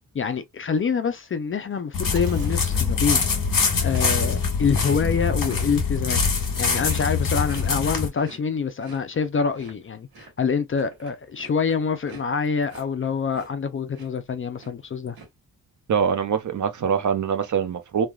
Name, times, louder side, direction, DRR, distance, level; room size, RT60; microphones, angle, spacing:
voice 1, 0.1-3.2 3.8-6.2 6.6-15.2, left 6 dB, 35° left, 0.4 m, -26 dB
sound 1, 1.9-8.1, left 5 dB, 65° left, 1.3 m, -23 dB
Chewing mastication, 2.0-5.7 5.9-13.7 13.9-14.3 14.6-15.3, right 4 dB, 85° right, 1.6 m, -44 dB
voice 2, 15.9-18.1, right 7 dB, 55° right, 0.6 m, -23 dB
3.3 x 2.3 x 2.2 m
wide cardioid pair, 115°, 36 cm